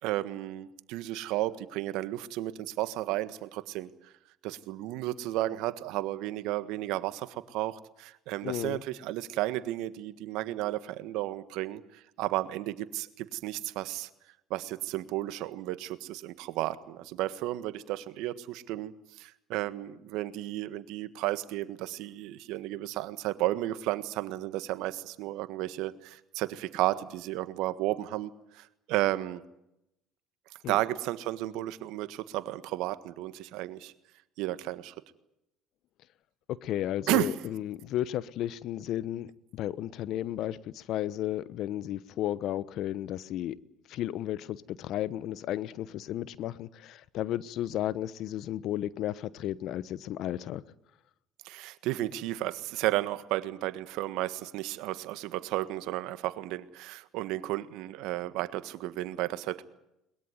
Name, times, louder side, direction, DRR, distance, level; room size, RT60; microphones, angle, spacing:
voice 1, 0.0-4.1 4.4-14.1 14.5-29.4 30.7-33.9 34.4-34.9 37.1-37.3 51.4-59.6, right 15 dB, 75° right, 1.5 m, -33 dB
voice 2, 8.4-8.8 30.6-30.8 36.5-43.6 43.9-50.6, left 12 dB, 65° left, 1.1 m, -33 dB
22.0 x 21.0 x 9.5 m
hypercardioid pair, 70°, 0 cm